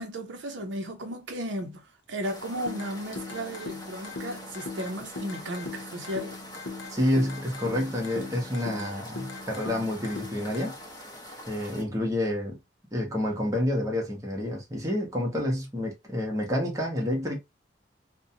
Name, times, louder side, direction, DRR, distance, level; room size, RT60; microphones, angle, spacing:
voice 1, 0.0-6.4, equal, 70° right, 0.6 m, -35 dB
sound 1, 2.2-11.8, left 1 dB, 20° left, 0.7 m, -44 dB
sound 2, 2.7-10.7, left 3 dB, 80° left, 0.6 m, -40 dB
voice 2, 6.9-10.7 11.5-12.6 12.9-17.4, left 1 dB, 15° right, 0.7 m, -28 dB
2.6 x 2.1 x 2.6 m
head